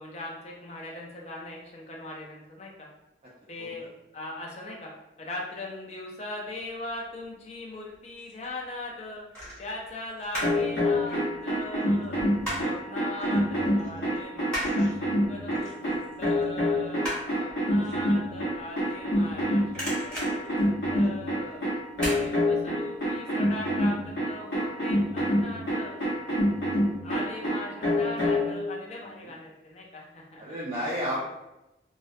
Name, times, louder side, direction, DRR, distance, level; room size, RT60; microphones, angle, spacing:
voice 1, 0.0-2.9 3.5-3.8 4.1-4.9 5.2-9.2 9.6-12.2 12.6-21.6 22.1-26.0 27.0-30.4, left 1 dB, 35° left, -2 dB, 0.4 m, -40 dB
sound 1, 7.8-8.5 9.3-10.7 11.0-12.8 13.2-13.4 13.7-19.4 19.6-21.3 21.9-22.2 22.6-22.7, equal, 5° left, 1.0 m, -36 dB
sound 2, 10.4-28.6, left 1 dB, 70° left, 0.8 m, -26 dB
voice 2, 17.0-17.5 29.0-29.3 30.4-31.3, equal, 35° right, -7 dB, 0.4 m, -33 dB
2.4 x 2.0 x 2.5 m, 0.95 s
head